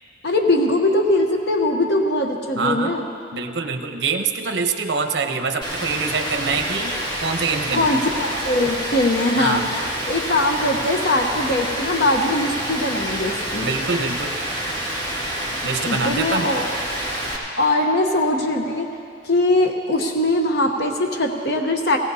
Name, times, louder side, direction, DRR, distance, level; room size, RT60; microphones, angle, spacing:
voice 1, 0.2-3.1 7.7-13.7 15.8-16.7 17.6-18.9 19.2-22.0, left 1 dB, 65° left, 2 dB, 1.0 m, -21 dB
voice 2, 2.6-2.9 3.3-8.0 9.4-9.7 13.6-14.3 15.6-16.5, right 4 dB, 80° right, 5 dB, 0.9 m, -25 dB
Rain, 5.6-17.4, right 1 dB, 25° left, 2.3 m, -28 dB
18.0 x 17.5 x 2.8 m, 2.6 s
head